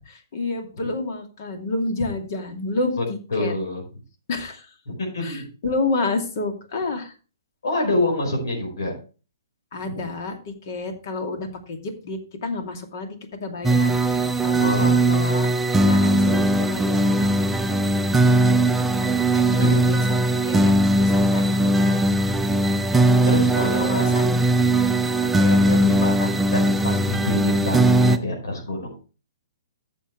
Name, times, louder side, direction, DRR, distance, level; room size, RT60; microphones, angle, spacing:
voice 1, 0.3-3.0 3.4-3.5 4.3-4.7 5.2-7.1 9.7-15.5 15.8-17.3 18.1-20.2 20.5-20.7 21.0-22.1 23.5-24.4 25.7-25.9, left 3 dB, 55° left, 5 dB, 2.5 m, -30 dB
voice 2, 3.3-3.8 4.9-5.4 7.6-8.9 9.8-10.1 14.6-15.0 19.6-19.8 23.2-24.1 25.4-29.0, left 2 dB, 80° left, 0 dB, 4.8 m, -27 dB
sound 1, 13.6-28.2, right 1 dB, 5° right, 0.6 m, -19 dB
14.0 x 7.3 x 3.2 m, 0.35 s
hypercardioid pair, 140°, 2 cm